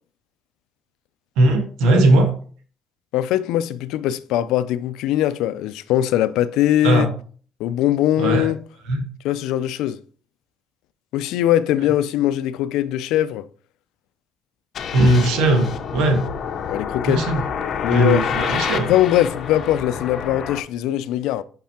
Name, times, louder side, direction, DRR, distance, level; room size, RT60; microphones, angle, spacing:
voice 1, 1.4-2.3 6.8-7.1 8.2-8.5 8.9-9.0 14.9-16.3 17.1-17.4 17.9-18.9, right 1 dB, 90° right, 1.6 m, -18 dB
voice 2, 3.1-7.1 7.6-8.6 9.2-10.0 11.1-13.5 16.7-17.2 17.8-18.3 18.9-21.4, left 12 dB, 80° left, 0.5 m, -21 dB
sound 1, 14.7-20.6, left 7 dB, 40° left, 0.7 m, -28 dB
5.8 x 5.5 x 4.3 m
cardioid pair, 165°, 0 cm